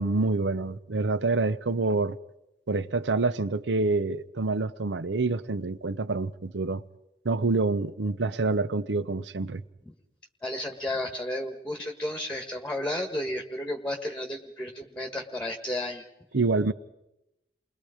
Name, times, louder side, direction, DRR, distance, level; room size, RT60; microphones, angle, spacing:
voice 1, 0.0-2.2 2.7-6.8 7.2-9.6 16.3-16.7, right 3 dB, 85° right, 0.7 m, -27 dB
voice 2, 10.4-16.1, left 1 dB, 5° left, 1.4 m, -32 dB
29.5 x 22.0 x 5.0 m
head